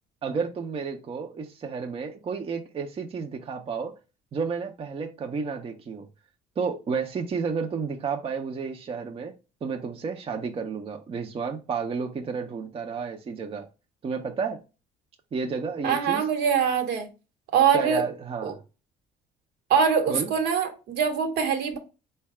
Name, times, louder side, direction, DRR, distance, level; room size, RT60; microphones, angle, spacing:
voice 1, 0.2-3.9 4.3-6.1 6.6-9.3 9.6-13.7 14.0-14.6 15.3-16.3 17.7-18.6 20.1-20.3, right 5 dB, 35° right, 0.6 m, -31 dB
voice 2, 15.8-17.1 17.5-18.0 18.4-18.5 19.7-21.8, right 7 dB, 75° right, 1.1 m, -23 dB
4.0 x 2.2 x 4.6 m
cardioid pair, 110°, 17 cm